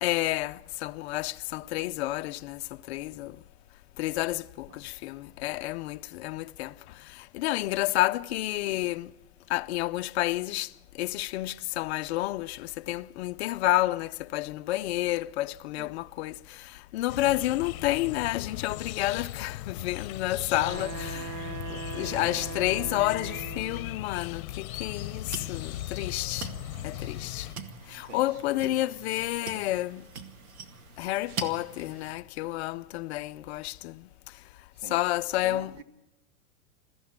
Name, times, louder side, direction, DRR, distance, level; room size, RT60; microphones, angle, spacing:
voice 1, 0.0-2.6 2.9-3.4 4.0-6.7 7.3-9.1 9.5-10.7 11.0-26.5 26.8-27.5 27.9-30.0 31.0-34.1 34.9-35.7, left 16 dB, 50° left, 0.7 m, -30 dB
sound 1, 17.1-27.6, left 14 dB, 70° left, 0.9 m, -38 dB
Wind instrument woodwind instrument, 20.5-24.0, right 9 dB, 30° right, 0.7 m, -40 dB
voice 2, 22.2-22.5 28.1-28.4 34.7-35.0 35.4-35.8, right 7 dB, 60° right, 2.1 m, -46 dB
sound 2, 24.8-32.1, right 5 dB, 80° right, 2.1 m, -43 dB
22.0 x 14.5 x 8.6 m
supercardioid pair, 155°, 43 cm